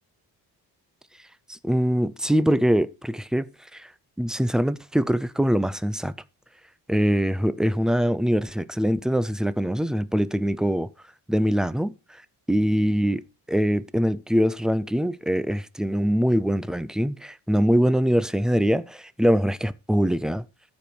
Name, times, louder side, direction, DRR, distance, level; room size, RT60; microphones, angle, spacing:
voice 1, 1.5-3.9 4.2-6.1 6.9-10.9 11.3-11.9 12.5-13.2 13.5-20.4, equal, ahead, 0.5 m, -23 dB
13.0 x 5.2 x 4.5 m
cardioid pair, 110°, 40 cm